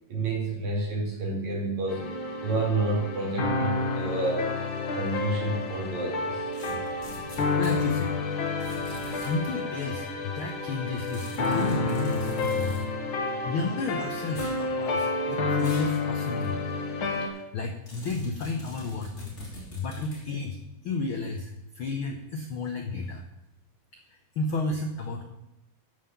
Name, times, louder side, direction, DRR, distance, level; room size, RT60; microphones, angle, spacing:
voice 1, 0.1-2.0 2.4-4.5 5.0-6.5, right 2 dB, 60° right, -1 dB, 3.8 m, -29 dB
sound 1, 1.9-17.3, left 3 dB, 50° left, 1.8 m, -30 dB
sound 2, 6.5-7.8 8.6-9.5 11.1-12.8 14.3-14.6 15.6-16.0 16.4-16.5 17.9-20.2, left 1 dB, 20° left, 3.5 m, -42 dB
voice 2, 7.2-8.2 8.9-12.8 13.2-16.6 17.2-19.1 19.7-23.2 24.1-25.2, left 3 dB, 75° left, 4 dB, 1.2 m, -33 dB
13.0 x 5.7 x 6.9 m, 0.94 s
omnidirectional pair, 3.7 m